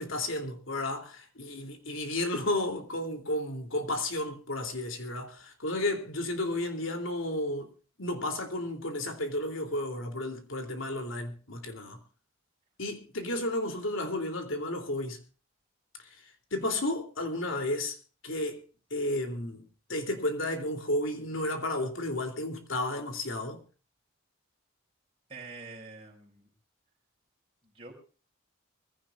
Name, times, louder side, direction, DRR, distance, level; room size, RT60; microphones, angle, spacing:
voice 1, 0.0-7.7 8.0-12.0 12.8-15.2 16.5-17.9 18.2-18.6 18.9-23.6, left 1 dB, 75° left, 3.1 m, -32 dB
voice 2, 25.3-26.5 27.6-27.9, right 3 dB, 25° right, 5.2 m, -46 dB
23.5 x 16.0 x 2.5 m
head